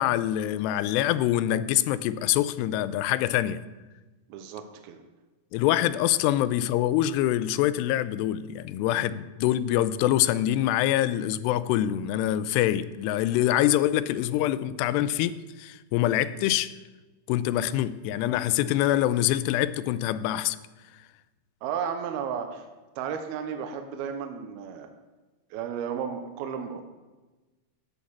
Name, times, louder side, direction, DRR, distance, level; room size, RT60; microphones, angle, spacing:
voice 1, 0.0-3.6 5.5-16.7 17.3-20.6, left 13 dB, 85° left, 2.6 m, -25 dB
voice 2, 4.3-5.0 21.6-22.7 23.0-24.9 25.5-26.8, right 7 dB, 75° right, 2.6 m, -33 dB
13.5 x 5.3 x 7.2 m
omnidirectional pair, 4.8 m